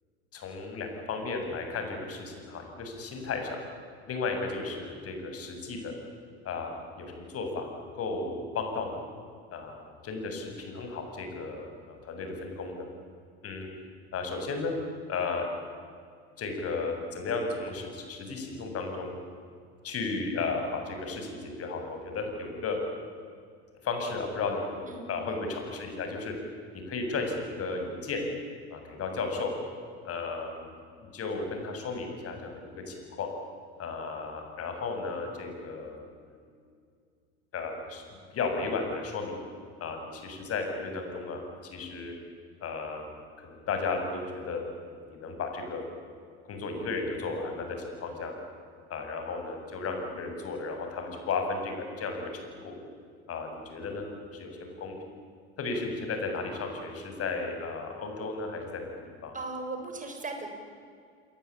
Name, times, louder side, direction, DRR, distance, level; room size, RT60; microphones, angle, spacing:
voice 1, 0.3-3.6 4.1-5.9 6.4-9.0 9.5-12.9 13.4-13.7 14.1-14.7 15.1-15.5 16.4-19.1 19.8-22.8 23.8-26.3 26.9-28.2 28.7-29.5 30.0-33.3 33.8-36.0 36.3-36.6 37.5-39.4 39.8-42.1 42.6-44.6 45.0-45.8 46.4-48.4 48.9-52.8 53.3-55.0 55.6-58.9 59.2-59.4, left 4 dB, 45° left, 4 dB, 7.8 m, -34 dB
voice 2, 24.9-25.4 59.3-60.5, right 3 dB, 25° right, 4 dB, 7.1 m, -38 dB
29.0 x 22.0 x 9.0 m, 2.2 s
hypercardioid pair, 70°, 34 cm